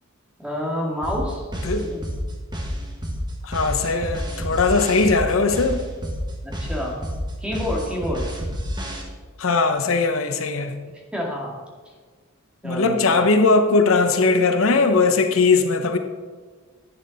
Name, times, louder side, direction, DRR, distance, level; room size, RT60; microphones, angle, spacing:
voice 1, 0.4-1.5 1.8-2.0 6.4-7.0 7.4-8.3 11.1-11.6 12.6-13.2, equal, 5° right, -2 dB, 2.1 m, -28 dB
sound 1, 1.0-9.0, equal, 20° right, 1.6 m, -29 dB
voice 2, 3.4-5.8 9.4-10.7 12.6-16.0, left 3 dB, 75° left, 7 dB, 0.9 m, -19 dB
11.0 x 8.7 x 4.1 m, 1.5 s
head